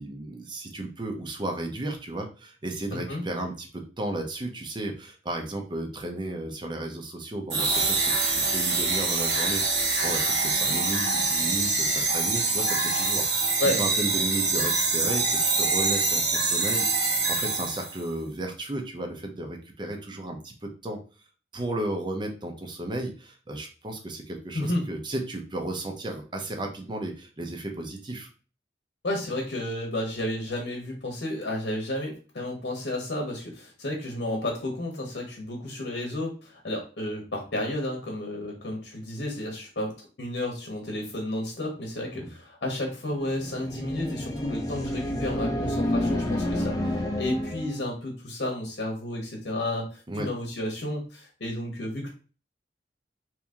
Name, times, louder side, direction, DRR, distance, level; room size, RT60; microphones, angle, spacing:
voice 1, 0.0-21.0 21.5-28.3 42.1-42.3 50.1-50.3, right 1 dB, 25° right, 3 dB, 0.6 m, -34 dB
voice 2, 2.9-3.2 13.6-13.8 24.5-24.8 29.0-52.1, left 1 dB, 65° left, 0 dB, 0.9 m, -32 dB
sound 1, 7.5-18.0, right 3 dB, 85° right, 1.3 m, -25 dB
sound 2, 43.2-47.8, left 1 dB, 20° left, 0.6 m, -29 dB
2.9 x 2.7 x 3.5 m, 0.36 s
head